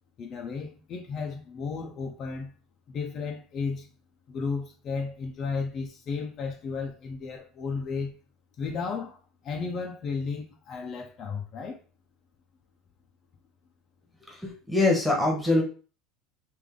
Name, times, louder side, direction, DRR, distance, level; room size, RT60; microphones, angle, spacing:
voice 1, 0.2-2.6 2.9-3.9 4.3-8.2 8.6-11.8, left 5 dB, 40° left, 0.5 m, -34 dB
voice 2, 14.3-15.6, left 2 dB, ahead, 1.1 m, -24 dB
3.4 x 2.5 x 3.6 m
supercardioid pair, 140°, 0 cm